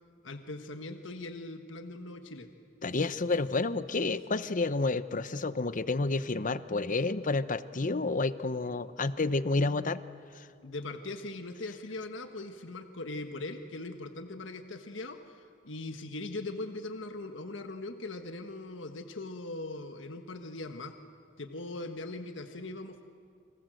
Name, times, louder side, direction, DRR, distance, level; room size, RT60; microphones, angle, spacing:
voice 1, 0.2-2.5 10.6-21.0 21.4-23.0, left 2 dB, 75° left, 6 dB, 1.5 m, -40 dB
voice 2, 2.8-10.0 10.3-10.5, left 3 dB, 45° left, 14 dB, 0.8 m, -30 dB
29.5 x 25.0 x 7.8 m, 2.3 s
head